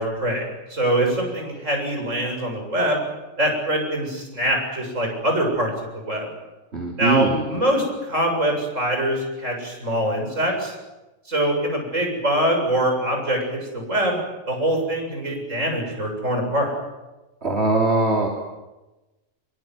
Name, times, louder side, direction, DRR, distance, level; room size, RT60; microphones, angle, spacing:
voice 1, 0.0-3.0 3.4-6.3 7.0-10.7 11.3-14.2 14.5-16.7, right 1 dB, 70° right, 2 dB, 8.0 m, -23 dB
voice 2, 6.7-7.4 17.4-18.3, right 3 dB, 55° right, 0 dB, 3.7 m, -21 dB
24.5 x 23.5 x 9.6 m, 1.1 s
omnidirectional pair, 1.3 m